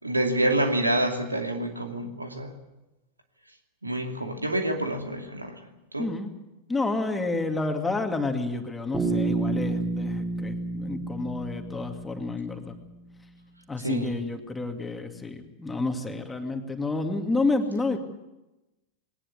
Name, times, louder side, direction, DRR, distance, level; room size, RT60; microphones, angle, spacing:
voice 1, 0.0-2.5 3.8-6.1 13.8-14.1, right 1 dB, 80° right, 5 dB, 2.6 m, -27 dB
voice 2, 6.0-6.3 6.7-12.8 13.7-18.0, left 3 dB, 10° left, 5 dB, 2.4 m, -29 dB
Bass guitar, 8.9-12.8, right 2 dB, 15° right, 4.4 m, -30 dB
21.0 x 19.0 x 8.3 m, 0.98 s
figure-of-eight pair, 90°, 0 cm